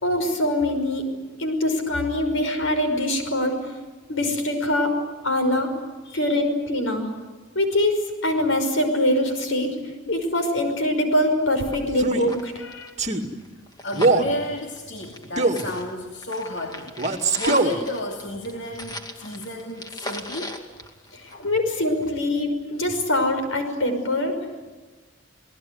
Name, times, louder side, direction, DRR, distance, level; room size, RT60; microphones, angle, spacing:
voice 1, 0.0-1.1 1.4-3.6 4.1-5.0 5.2-5.7 6.1-7.1 7.6-9.7 10.1-12.9 21.1-24.4, left 1 dB, 80° left, 6 dB, 5.6 m, -23 dB
voice 2, 6.0-6.4 13.8-20.6 21.3-21.5, left 1 dB, 65° left, 0 dB, 2.7 m, -32 dB
sound 1, 11.4-11.5 11.7-11.8 12.1-15.3 15.5-21.6 22.0-22.1, left 1 dB, 20° left, 2.4 m, -38 dB
Male speech man speaking, 11.9-12.3 13.0-13.3 13.9-14.3 15.4-15.7 17.0-17.8, right 2 dB, 35° right, 2.3 m, -21 dB
29.0 x 19.0 x 9.5 m, 1.3 s
head